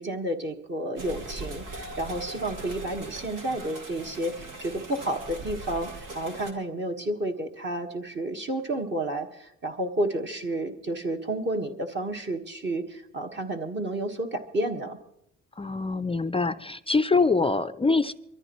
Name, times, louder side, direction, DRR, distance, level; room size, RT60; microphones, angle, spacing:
voice 1, 0.0-15.0, right 1 dB, 40° right, 3 dB, 1.5 m, -31 dB
sound 1, 1.0-6.5, right 2 dB, 90° right, 2.3 m, -40 dB
voice 2, 15.6-18.1, left 3 dB, 20° left, 11 dB, 0.5 m, -24 dB
24.0 x 14.0 x 3.1 m, 0.76 s
cardioid pair, 90°, 30 cm